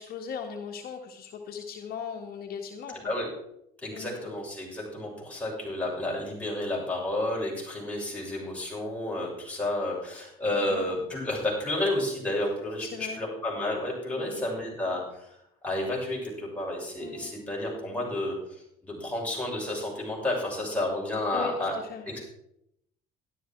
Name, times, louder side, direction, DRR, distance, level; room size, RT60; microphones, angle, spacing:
voice 1, 0.0-3.2 3.9-4.3 10.5-11.0 12.8-13.2 14.2-14.5 17.0-17.4 21.3-22.1, left 6 dB, 65° left, 2 dB, 1.6 m, -39 dB
voice 2, 3.8-15.0 15.6-18.3 18.8-21.7 22.1-22.2, left 1 dB, 10° left, -4 dB, 6.5 m, -31 dB
13.0 x 12.0 x 4.6 m, 0.78 s
cardioid pair, 110°, 17 cm